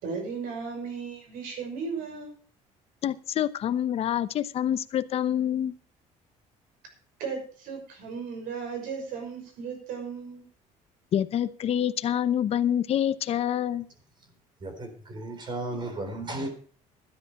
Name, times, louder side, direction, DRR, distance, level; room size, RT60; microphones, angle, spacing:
voice 1, 0.0-2.3 7.2-10.5, right 5 dB, 75° right, 4 dB, 6.0 m, -35 dB
voice 2, 3.0-5.7 11.1-13.8, left 10 dB, 45° left, 13 dB, 0.9 m, -26 dB
voice 3, 14.6-16.5, right 2 dB, 30° right, 7 dB, 3.9 m, -34 dB
13.0 x 10.0 x 5.6 m, 0.42 s
cardioid pair, 140°, 14 cm